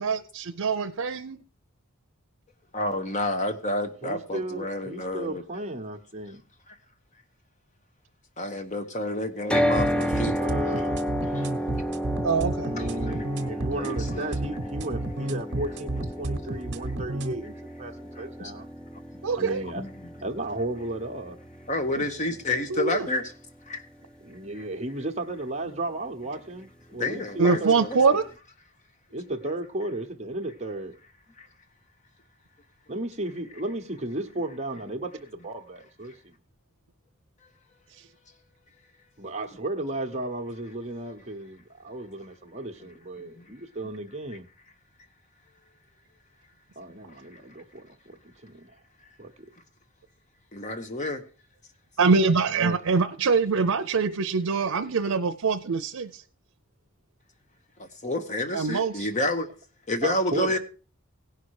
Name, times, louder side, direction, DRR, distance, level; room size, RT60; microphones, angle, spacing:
voice 1, 0.0-1.4 12.2-12.7 19.2-19.6 22.0-22.1 22.7-23.1 27.4-28.3 37.9-38.1 52.0-56.2 58.5-59.1, right 4 dB, 80° right, 0.6 m, -24 dB
voice 2, 2.7-5.4 8.4-10.4 11.3-11.5 12.8-12.9 13.8-14.3 18.2-18.5 19.8-19.9 21.7-23.2 23.7-23.8 27.0-28.0 43.2-43.5 47.1-47.4 50.5-51.2 57.8-59.5 59.9-60.6, left 1 dB, 35° left, 1.2 m, -29 dB
voice 3, 4.0-6.4 10.1-11.1 12.6-15.9 16.2-18.7 19.4-19.8 20.2-21.4 24.2-27.9 29.1-31.0 32.9-36.4 39.2-44.5 46.8-48.8 49.2-49.5 52.5-52.8 60.0-60.6, right 1 dB, 30° right, 1.1 m, -34 dB
sound 1, 9.5-23.6, equal, 5° left, 0.4 m, -32 dB
sound 2, 9.8-17.3, right 2 dB, 55° right, 1.1 m, -31 dB
17.0 x 5.7 x 4.8 m
head